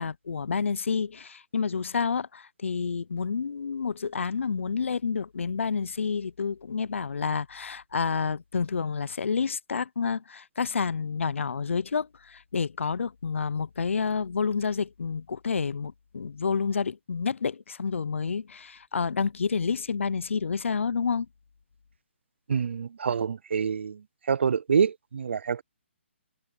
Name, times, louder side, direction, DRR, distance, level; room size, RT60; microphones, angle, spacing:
voice 1, 0.0-21.3, left 5 dB, 85° left, 0.5 m, -29 dB
voice 2, 22.5-24.0 24.3-25.6, right 6 dB, 65° right, 0.4 m, -26 dB
hypercardioid pair, 170°, 7 cm